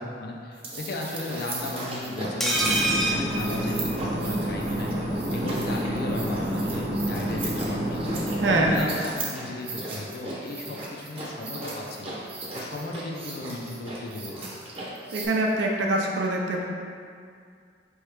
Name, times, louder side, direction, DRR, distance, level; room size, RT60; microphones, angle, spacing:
voice 1, 0.0-8.0 8.5-12.1 12.5-14.5, left 2 dB, 60° left, 0 dB, 0.5 m, -35 dB
sound 1, 0.5-15.3, right 2 dB, 35° right, 0.7 m, -37 dB
sound 2, 2.4-4.4 4.7-4.8 5.0-5.2, right 1 dB, ahead, 0.4 m, -26 dB
sound 3, 2.5-8.8, equal, 55° right, 1.0 m, -29 dB
voice 2, 8.4-8.7 15.1-16.6, right 2 dB, 80° right, 0 dB, 0.5 m, -24 dB
4.6 x 3.1 x 3.3 m, 2.2 s
head